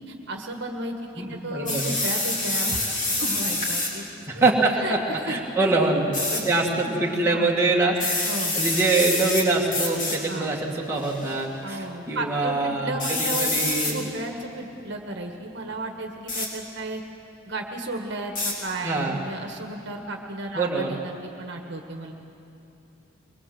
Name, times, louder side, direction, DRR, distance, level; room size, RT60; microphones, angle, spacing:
voice 1, 0.1-4.0 4.3-4.4 4.7-6.5 6.8-7.5 8.3-8.5 10.3-10.5 11.6-17.0 17.5-22.1, right 2 dB, 55° right, 3 dB, 1.7 m, -34 dB
voice 2, 1.2-1.9 4.3-5.0 5.2-6.1 6.4-8.3 8.5-14.0 18.8-19.2 20.5-21.0, right 3 dB, 10° right, -3 dB, 2.3 m, -24 dB
sound 1, 1.7-3.9 6.1-6.4 7.9-9.4 9.7-10.2 11.0-11.3 13.0-13.9 16.3-16.5 18.4-18.5, left 2 dB, 40° left, 3.7 m, -26 dB
23.5 x 21.0 x 7.9 m, 2.8 s
head